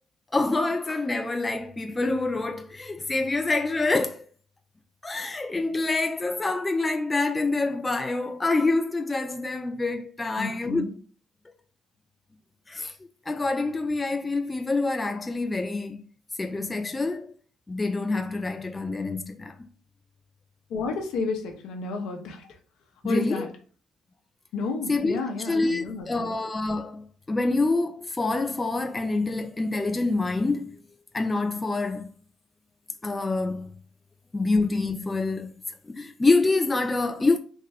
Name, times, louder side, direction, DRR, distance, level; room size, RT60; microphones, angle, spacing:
voice 1, 0.3-4.2 5.0-10.9 12.7-16.0 16.4-17.3 17.7-19.6 23.0-23.5 24.9-30.8 31.1-32.1 33.0-33.7 34.3-35.5 35.8-37.4, left 3 dB, 20° left, 0.4 m, -26 dB
voice 2, 10.4-10.9 20.7-22.6 23.0-23.5 24.5-26.3, left 3 dB, 70° left, 0.8 m, -31 dB
3.6 x 2.1 x 3.4 m
supercardioid pair, 70°, 0 cm